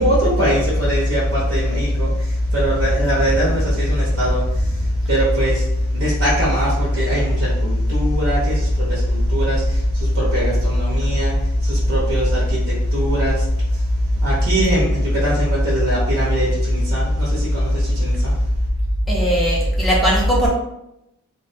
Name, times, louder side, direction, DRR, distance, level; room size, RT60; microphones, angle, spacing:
voice 1, 0.0-2.1 2.5-4.4 5.1-5.6 5.9-9.6 10.1-11.3 11.6-13.4 14.2-18.3, equal, 60° right, -6 dB, 0.7 m, -19 dB
voice 2, 19.1-20.5, right 1 dB, ahead, -6 dB, 0.5 m, -18 dB
2.2 x 2.2 x 2.5 m, 0.85 s
head